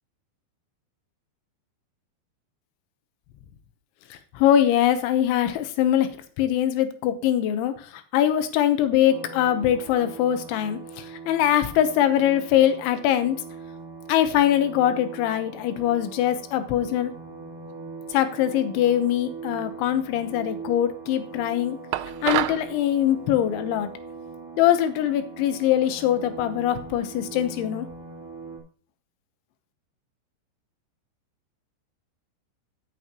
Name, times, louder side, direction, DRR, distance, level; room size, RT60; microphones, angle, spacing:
voice 1, 4.1-6.1 6.4-13.4 14.1-17.1 18.1-21.8 22.2-23.9 24.6-27.9, left 11 dB, 80° left, 10 dB, 3.3 m, -22 dB
sound 1, 9.1-28.6, right 4 dB, 5° right, 2.8 m, -41 dB
sound 2, 21.9-22.7, right 15 dB, 80° right, 2.6 m, -26 dB
11.0 x 9.5 x 2.9 m, 0.43 s
omnidirectional pair, 5.3 m